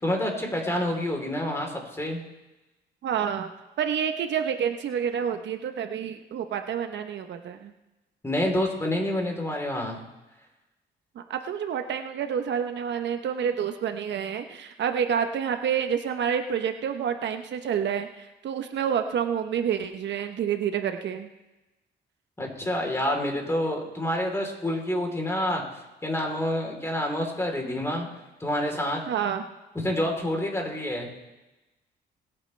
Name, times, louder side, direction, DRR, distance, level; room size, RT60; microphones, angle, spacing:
voice 1, 0.0-2.2 8.2-10.0 22.4-25.6 26.0-28.1 28.4-29.0 29.8-31.1, left 1 dB, 15° left, 1 dB, 3.5 m, -28 dB
voice 2, 3.0-3.5 3.8-7.7 11.1-21.3 29.1-29.4, right 8 dB, 70° right, 7 dB, 0.9 m, -28 dB
21.5 x 8.8 x 3.3 m, 1.0 s
cardioid pair, 85°, 19 cm